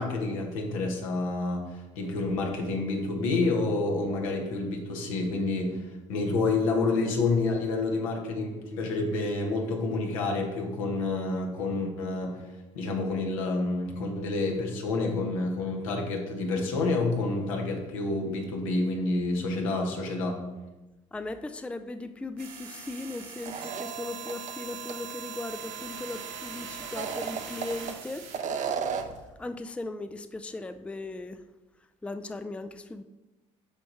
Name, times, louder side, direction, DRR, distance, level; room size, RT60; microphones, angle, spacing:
voice 1, 0.0-5.8 6.1-12.4 12.7-20.4, left 3 dB, 80° left, 1 dB, 1.4 m, -28 dB
voice 2, 21.1-28.3 29.4-31.4 32.0-33.0, left 2 dB, 5° left, 9 dB, 0.4 m, -38 dB
sound 1, 22.4-28.4, right 6 dB, 65° right, 1.4 m, -41 dB
sound 2, 23.4-24.5 24.9-25.0 26.8-27.9 28.3-29.2, right 6 dB, 45° right, 0.8 m, -33 dB
7.1 x 5.2 x 4.4 m, 1.1 s
hypercardioid pair, 60°, 17 cm